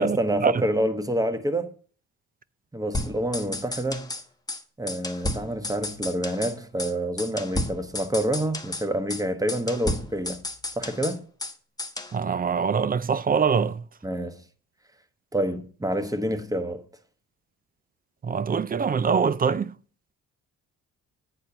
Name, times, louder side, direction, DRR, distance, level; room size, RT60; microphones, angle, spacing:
voice 1, 0.0-1.7 2.7-4.1 4.8-10.4 10.8-11.2 14.0-14.4 15.3-16.8, right 1 dB, 10° right, 1.1 m, -27 dB
sound 1, 2.9-4.2 4.5-4.6 4.9-6.5 6.8-6.9 7.2-8.8 9.1-9.2 9.5-11.5 11.8-12.1, left 1 dB, 10° left, 1.1 m, -32 dB
voice 2, 12.1-13.8 18.2-19.7, right 6 dB, 25° right, 0.4 m, -23 dB
8.6 x 4.5 x 6.8 m
cardioid pair, 75°, 34 cm